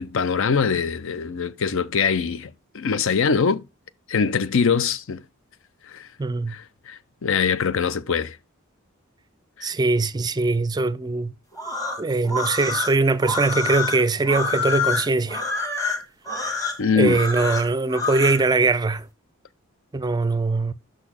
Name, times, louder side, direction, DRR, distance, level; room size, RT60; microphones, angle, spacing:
voice 1, 0.0-2.5 2.7-3.6 4.1-5.2 5.9-6.1 6.5-8.4 9.6-9.7 16.8-17.2, left 6 dB, 65° left, 0.5 m, -23 dB
voice 2, 6.2-6.5 9.6-11.3 12.0-15.4 17.0-19.1 19.9-20.7, right 3 dB, 20° right, 0.4 m, -21 dB
sound 1, 11.5-18.4, left 4 dB, 15° left, 1.5 m, -27 dB
6.2 x 4.0 x 6.3 m
head